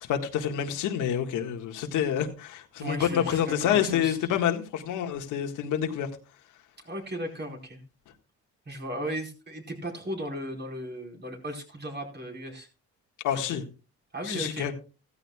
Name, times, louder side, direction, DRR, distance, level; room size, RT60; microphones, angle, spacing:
voice 1, 0.0-6.1 13.2-13.6 14.3-14.7, left 9 dB, 90° left, 1.8 m, -28 dB
voice 2, 2.8-4.2 6.8-7.8 8.7-12.7 13.3-13.4 14.1-14.7, equal, 35° right, 4.6 m, -36 dB
15.5 x 14.0 x 2.4 m
cardioid pair, 90°, 30 cm